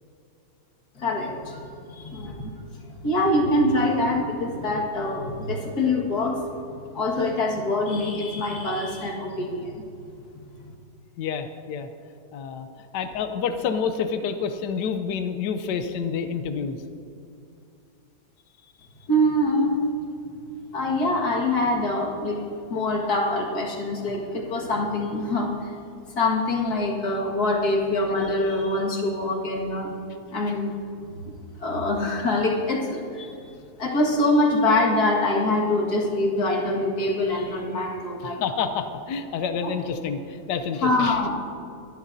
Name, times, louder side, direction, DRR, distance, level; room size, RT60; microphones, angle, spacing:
voice 1, 1.0-6.4 6.9-9.8 19.1-19.8 20.7-22.4 22.7-25.7 26.2-30.0 30.3-30.7 31.6-33.3 33.8-38.4 39.6-39.7 40.8-41.4, left 1 dB, 65° left, -1 dB, 2.3 m, -24 dB
voice 2, 11.2-11.9 12.3-12.7 12.9-16.8 38.2-41.2, left 6 dB, 85° left, 8 dB, 1.3 m, -28 dB
22.5 x 11.5 x 2.7 m, 2.6 s
omnidirectional pair, 1.8 m